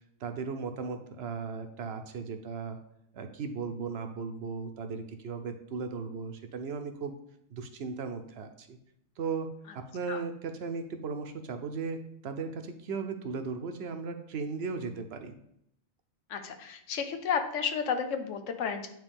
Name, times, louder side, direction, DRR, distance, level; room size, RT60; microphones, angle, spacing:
voice 1, 0.2-2.8 3.1-7.1 7.5-8.8 9.2-9.5 9.7-15.4, right 5 dB, 65° right, 7 dB, 0.8 m, -36 dB
voice 2, 16.3-18.9, left 6 dB, 90° left, 7 dB, 1.1 m, -32 dB
9.0 x 3.1 x 3.4 m, 0.73 s
omnidirectional pair, 1.2 m